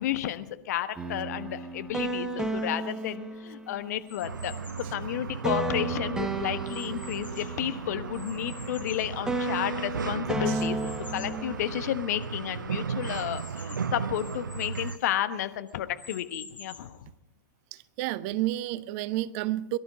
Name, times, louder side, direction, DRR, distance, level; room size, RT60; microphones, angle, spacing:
voice 1, 0.0-17.1, left 11 dB, 55° left, 10 dB, 1.2 m, -32 dB
sound 1, 1.0-4.1 5.4-8.9 9.3-11.8, right 2 dB, 5° right, 1.3 m, -33 dB
sound 2, 4.1-5.0 5.6-7.7 8.1-9.8 10.5-11.4 11.9-12.0 12.2-12.3 13.0-15.1 15.7-17.0, left 4 dB, 85° left, 1.9 m, -49 dB
sound 3, 4.2-15.0, right 6 dB, 80° right, 0.8 m, -36 dB
voice 2, 18.0-19.8, right 15 dB, 45° right, 17 dB, 0.7 m, -30 dB
23.0 x 12.0 x 5.1 m, 0.83 s
figure-of-eight pair, 105°, 10 cm